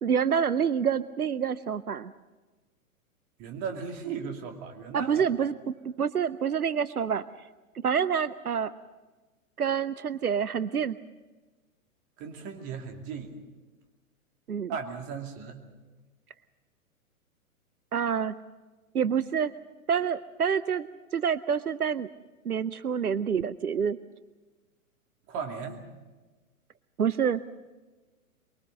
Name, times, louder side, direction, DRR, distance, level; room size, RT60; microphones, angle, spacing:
voice 1, 0.0-2.1 4.9-7.5 7.8-8.7 9.6-11.0 14.5-14.7 17.9-18.3 18.9-19.5 19.9-22.1 22.4-24.0 27.0-27.4, right 7 dB, 80° right, 16 dB, 0.7 m, -27 dB
voice 2, 3.4-5.2 12.2-13.3 14.7-15.6 25.3-25.8, right 6 dB, 30° right, 3 dB, 2.6 m, -36 dB
23.5 x 22.5 x 6.6 m, 1.2 s
figure-of-eight pair, 110°, 44 cm